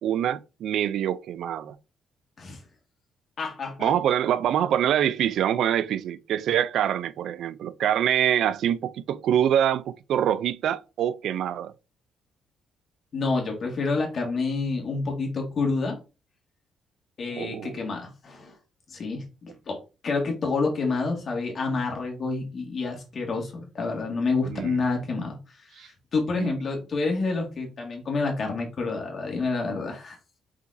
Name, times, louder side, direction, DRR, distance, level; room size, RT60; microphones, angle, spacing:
voice 1, 0.0-1.8 3.8-11.7 17.3-17.8 24.5-24.8 25.8-25.9 26.4-26.6, right 10 dB, 75° right, 0.3 m, -25 dB
voice 2, 3.4-3.9 13.1-16.0 17.2-18.5 18.9-25.4 25.7-30.2, left 3 dB, 50° left, 1.8 m, -28 dB
4.9 x 4.0 x 2.6 m
cardioid pair, 90°, 0 cm